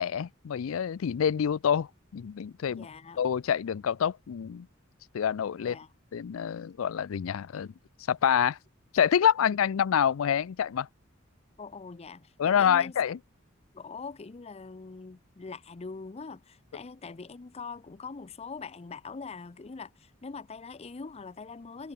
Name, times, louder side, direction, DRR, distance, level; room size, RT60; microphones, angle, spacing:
voice 1, 0.0-2.9 3.2-4.7 5.1-5.8 6.1-7.7 8.1-8.6 8.9-10.9 12.4-13.2, left 8 dB, 85° left, 0.4 m, -27 dB
voice 2, 2.7-3.2 5.6-5.9 11.6-13.0 13.7-21.9, left 4 dB, 30° left, 0.5 m, -43 dB
head